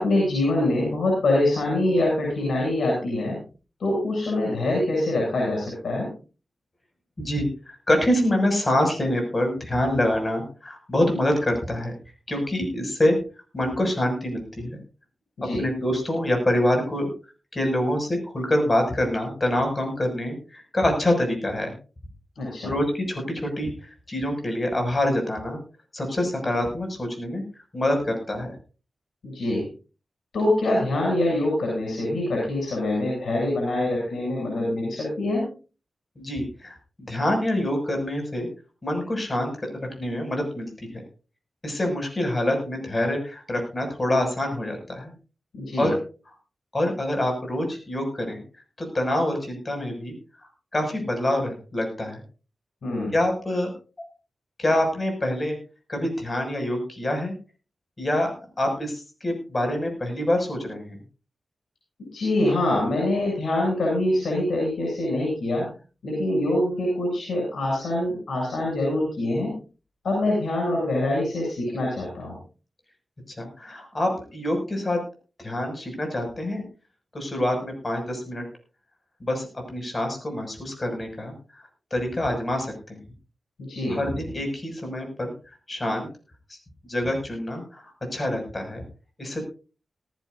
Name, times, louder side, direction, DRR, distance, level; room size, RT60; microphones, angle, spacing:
voice 1, 0.0-3.4 3.8-6.1 15.4-15.6 22.4-22.7 29.2-29.6 30.3-35.4 45.5-45.9 52.8-53.1 62.1-65.7 66.0-69.5 70.0-72.4 83.6-84.0, left 1 dB, 85° left, -2 dB, 7.3 m, -24 dB
voice 2, 7.2-11.9 12.3-13.2 13.5-14.8 15.4-17.1 17.5-21.7 22.6-25.6 25.9-27.4 27.7-28.5 36.2-36.8 37.1-38.5 38.8-41.0 41.6-45.1 45.8-46.0 46.7-48.4 48.8-52.2 53.1-53.7 54.6-55.6 55.9-57.3 58.0-58.3 58.6-61.0 73.4-75.0 75.4-76.6 77.1-78.4 79.2-83.0 83.9-85.3 85.7-86.1 86.5-86.6 86.8-88.8 89.2-89.4, left 1 dB, 30° left, 3 dB, 6.5 m, -26 dB
18.5 x 15.0 x 2.7 m, 0.35 s
wide cardioid pair, 90°, 0 cm